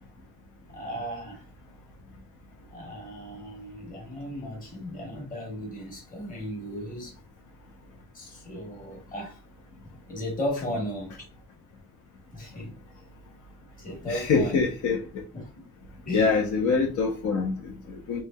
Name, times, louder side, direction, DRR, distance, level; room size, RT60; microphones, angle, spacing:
voice 1, 0.7-1.4 2.7-7.1 8.1-9.4 9.8-11.2 12.3-12.7 13.8-14.6 15.3-15.4 16.0-16.4, equal, 25° left, 1.2 m, -35 dB
voice 2, 14.1-15.0 16.1-18.2, left 4 dB, 70° left, 0.8 m, -25 dB
3.2 x 2.8 x 2.3 m
cardioid pair, 145°, 31 cm